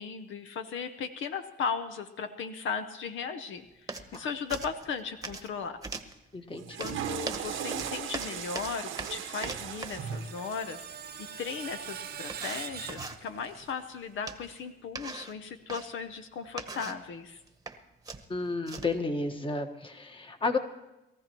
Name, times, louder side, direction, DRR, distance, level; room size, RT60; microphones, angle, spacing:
voice 1, 0.0-3.7 4.1-5.8 6.8-17.4, left 6 dB, 75° left, 8 dB, 0.8 m, -37 dB
sound 1, 3.9-4.2 4.5-5.5 5.8-6.2 6.8-10.1 11.6-11.7 12.3-13.2 14.3-14.6 15.0-15.9 16.5-17.1 17.5-17.8 18.1-19.0, right 3 dB, 20° right, 1.1 m, -40 dB
voice 2, 6.3-6.8 18.3-20.6, left 3 dB, 25° left, 6 dB, 1.4 m, -32 dB
Water / Toilet flush, 6.5-12.8, right 9 dB, 90° right, 1.1 m, -39 dB
Screech, 9.4-13.7, right 8 dB, 55° right, 0.9 m, -43 dB
22.0 x 14.5 x 3.0 m, 0.95 s
cardioid pair, 90°, 20 cm